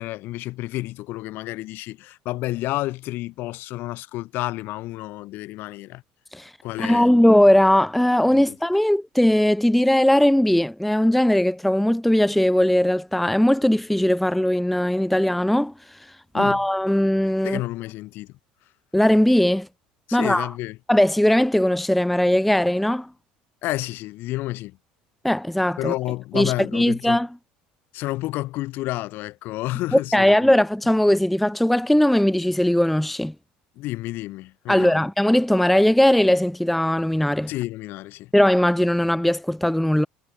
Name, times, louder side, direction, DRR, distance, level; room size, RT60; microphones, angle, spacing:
voice 1, 0.0-6.0 6.6-7.2 8.3-8.6 16.3-16.6 17.4-18.4 20.1-20.8 23.6-24.8 25.8-27.2 27.9-30.5 33.8-35.0 37.5-38.3, left 18 dB, 65° left, 1.9 m, -30 dB
voice 2, 6.8-15.7 16.3-17.6 18.9-19.7 20.1-20.5 20.9-23.1 25.2-25.9 26.3-27.3 29.9-33.3 34.7-37.5 38.3-40.1, left 1 dB, 5° left, 0.3 m, -19 dB
hypercardioid pair, 80°, 4 cm